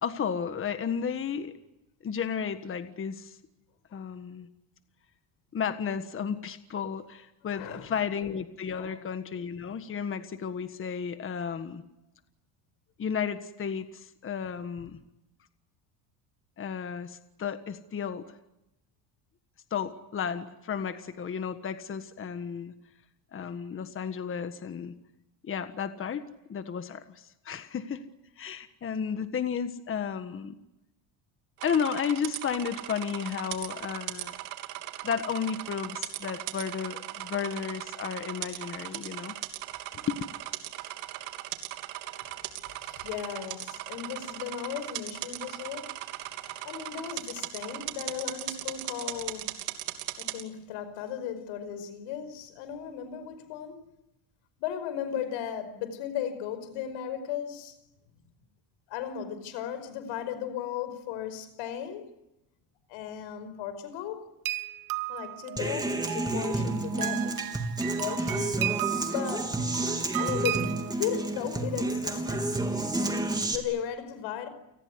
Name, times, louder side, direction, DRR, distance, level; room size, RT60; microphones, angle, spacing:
voice 1, 0.0-1.5 2.0-3.4 3.9-4.5 5.5-11.8 13.0-15.0 16.6-18.2 19.7-22.7 23.3-24.9 25.4-28.0 28.4-30.5 31.6-34.3 35.0-39.3 39.9-40.2, left 7 dB, 30° left, 1.6 m, -33 dB
voice 2, 7.5-7.9 8.7-9.1 42.8-46.0 46.4-49.6 50.2-53.9 54.6-57.8 58.9-62.1 62.9-64.3 65.1-68.5 69.1-69.6 70.2-70.7 71.0-72.5 73.5-74.5, left 9 dB, 80° left, 5.2 m, -36 dB
sound 1, 31.6-50.4, right 16 dB, 90° right, 3.1 m, -38 dB
sound 2, 64.5-70.9, right 14 dB, 45° right, 1.4 m, -35 dB
Human voice / Acoustic guitar, 65.6-73.6, right 2 dB, 10° right, 3.6 m, -30 dB
29.5 x 19.5 x 9.8 m
cardioid pair, 140°, 45 cm